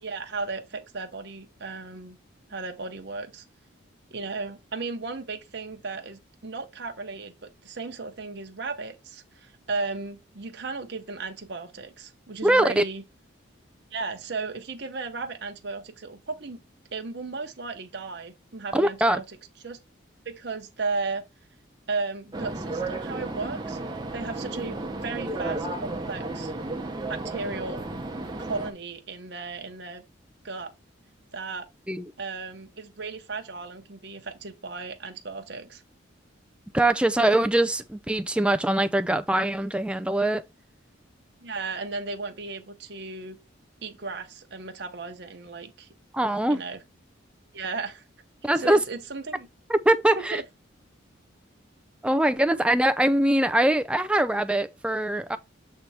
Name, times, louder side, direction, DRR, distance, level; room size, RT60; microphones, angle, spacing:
voice 1, 0.0-2.2 2.5-3.4 4.1-13.0 13.9-16.6 16.9-19.4 19.6-19.8 20.2-21.2 21.9-23.8 24.1-26.5 27.1-27.8 28.4-30.0 30.4-30.7 31.3-31.7 32.2-35.8 41.4-43.4 43.8-45.9 46.5-46.8 47.5-48.0 48.5-49.5 50.3-50.4, right 4 dB, 55° right, 0.9 m, -35 dB
voice 2, 12.4-12.8 18.7-19.2 31.9-32.1 36.7-40.4 46.1-46.6 48.4-48.8 49.7-50.4 52.0-55.4, right 1 dB, 5° right, 0.4 m, -22 dB
sound 1, 22.3-28.7, right 2 dB, 20° right, 0.8 m, -33 dB
7.5 x 3.4 x 4.2 m
head